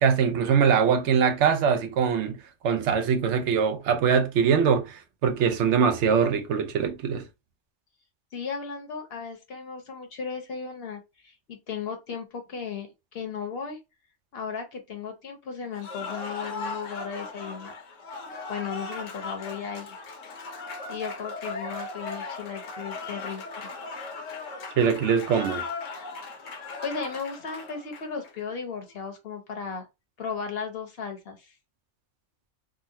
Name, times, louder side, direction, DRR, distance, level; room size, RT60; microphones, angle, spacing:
voice 1, 0.0-2.4 2.6-7.2 24.8-25.6, right 6 dB, 70° right, 0.9 m, -22 dB
voice 2, 8.3-13.8 14.3-17.8 18.5-20.0 20.9-23.7 26.8-29.8 30.2-31.5, left 6 dB, 60° left, 0.8 m, -36 dB
Cheering / Applause, 15.7-28.3, left 3 dB, 80° left, 1.1 m, -37 dB
3.9 x 2.0 x 2.6 m
omnidirectional pair, 1.3 m